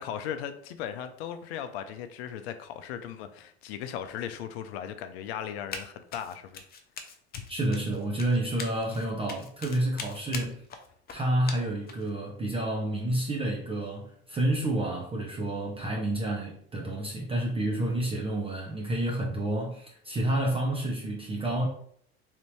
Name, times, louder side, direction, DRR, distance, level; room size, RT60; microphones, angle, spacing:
voice 1, 0.0-6.6 7.3-7.5 17.8-18.0, left 9 dB, 70° left, 0.5 m, -37 dB
Run, 5.7-5.9 6.1-12.1, left 5 dB, 30° left, 0.6 m, -41 dB
voice 2, 7.5-10.6 11.1-21.7, right 1 dB, 15° right, 0.6 m, -29 dB
3.2 x 2.6 x 3.1 m
hypercardioid pair, 95°, 33 cm